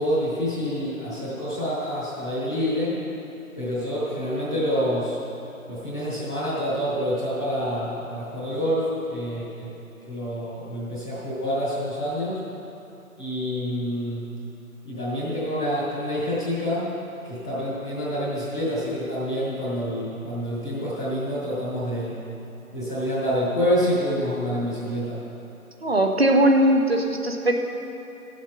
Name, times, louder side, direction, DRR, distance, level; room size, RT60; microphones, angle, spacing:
voice 1, 0.0-2.9 3.6-5.2 5.7-9.7 10.1-12.4 13.2-14.2 14.8-16.9 17.2-22.1 22.7-25.2, equal, 5° left, -15 dB, 1.2 m, -27 dB
voice 2, 25.8-27.5, right 1 dB, 45° right, 3 dB, 1.1 m, -19 dB
15.5 x 7.3 x 5.9 m, 2.8 s
figure-of-eight pair, 165°, 44 cm